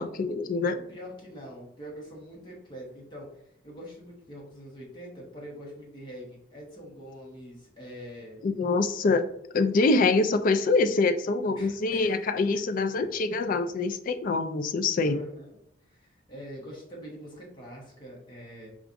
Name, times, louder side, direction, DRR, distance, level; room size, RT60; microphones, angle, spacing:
voice 1, 0.0-0.9 8.4-9.3 9.5-15.2, left 3 dB, 45° left, 8 dB, 0.3 m, -25 dB
voice 2, 0.9-8.4 11.5-12.3 15.0-15.6 15.8-18.7, equal, 25° left, -3 dB, 1.0 m, -44 dB
5.7 x 2.4 x 2.5 m, 0.77 s
head